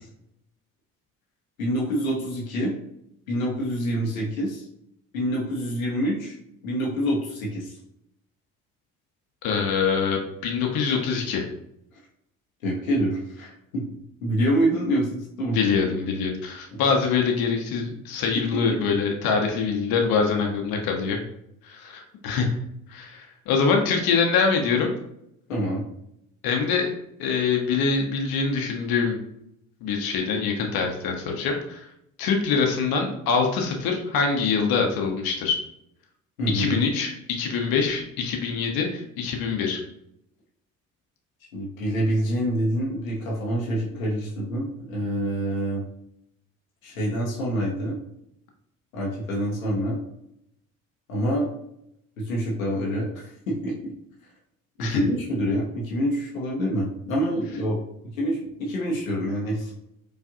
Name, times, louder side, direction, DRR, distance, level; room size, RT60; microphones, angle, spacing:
voice 1, 1.6-2.7 3.3-4.6 5.1-6.4 6.6-7.8 12.6-13.8 14.2-15.6 16.7-16.8 18.3-18.8 25.5-25.9 36.4-36.8 41.5-45.8 46.8-48.0 48.9-50.0 51.1-51.5 52.2-53.9 54.8-57.8 58.2-59.7, equal, 90° left, -3 dB, 0.9 m, -26 dB
voice 2, 9.4-11.5 15.5-21.2 21.6-22.6 22.9-24.9 26.4-26.9 27.2-29.2 29.8-31.9 32.2-35.6 36.5-39.8 54.8-55.0, left 5 dB, 60° left, 3 dB, 0.9 m, -24 dB
4.7 x 2.5 x 2.7 m, 0.77 s
hypercardioid pair, 55°, 40 cm